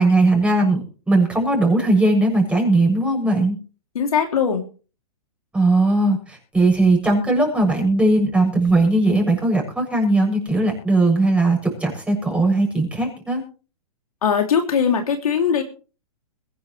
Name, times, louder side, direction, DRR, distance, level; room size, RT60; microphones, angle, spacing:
voice 1, 0.0-3.6 5.5-13.4, right 2 dB, 5° right, 0 dB, 7.3 m, -18 dB
voice 2, 3.9-4.6 14.2-15.6, left 7 dB, 70° left, 4 dB, 3.0 m, -20 dB
22.5 x 11.0 x 3.2 m, 0.37 s
hypercardioid pair, 120°, 19 cm